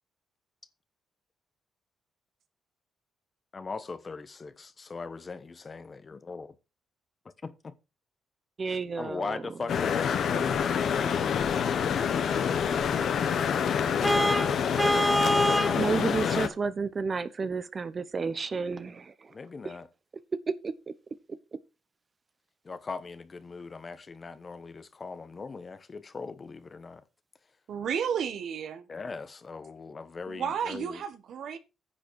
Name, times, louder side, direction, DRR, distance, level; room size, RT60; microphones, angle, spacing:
voice 1, 3.5-6.5 7.4-7.8 8.7-10.2 19.3-19.9 22.6-27.0 28.9-31.0, left 4 dB, 35° left, 1.1 m, -40 dB
voice 2, 8.6-9.4 15.5-19.4 19.6-19.8 20.5-20.9, right 4 dB, 40° right, 0.9 m, -32 dB
sound 1, 9.7-16.5, left 7 dB, 65° left, 1.3 m, -27 dB
Vehicle horn car horn honking, 14.0-15.8, equal, ahead, 0.6 m, -25 dB
voice 3, 27.7-28.9 30.3-31.6, right 7 dB, 70° right, 1.4 m, -32 dB
10.0 x 6.8 x 4.8 m
cardioid pair, 80°, 0 cm